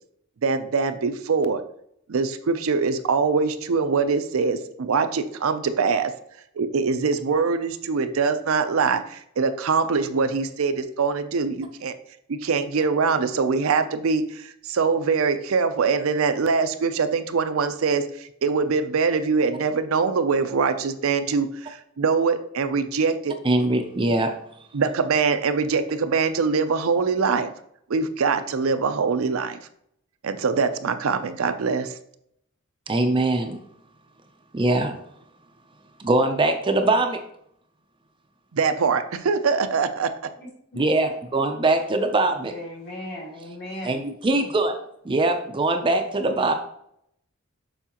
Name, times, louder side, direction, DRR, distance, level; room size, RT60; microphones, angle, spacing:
voice 1, 0.4-1.6 2.1-6.1 6.6-11.9 12.3-23.4 24.7-27.5 27.9-29.6 30.2-31.9 38.5-40.3, right 5 dB, 75° right, 10 dB, 0.5 m, -23 dB
voice 2, 23.4-24.3 32.9-33.6 34.5-34.9 36.0-37.2 40.7-42.5 43.8-44.8 45.0-46.5, right 2 dB, 25° right, 6 dB, 0.5 m, -22 dB
voice 3, 42.5-44.0, left 1 dB, 50° left, -2 dB, 2.1 m, -36 dB
7.0 x 4.7 x 2.9 m, 0.72 s
head